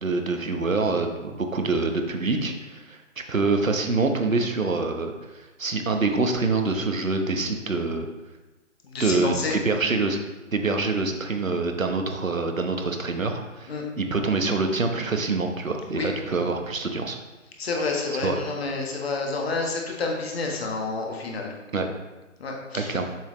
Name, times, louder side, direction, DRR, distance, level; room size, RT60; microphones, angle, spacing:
voice 1, 0.0-3.0 3.3-8.1 9.0-10.2 10.5-17.2 18.1-18.4 21.7-21.9 22.7-23.0, right 3 dB, 85° right, 4 dB, 1.0 m, -25 dB
voice 2, 8.9-9.5 13.7-13.8 15.9-16.1 17.6-21.5 22.4-22.9, left 3 dB, 50° left, 0 dB, 1.5 m, -29 dB
7.2 x 5.7 x 3.1 m, 1.1 s
figure-of-eight pair, 140°, 39 cm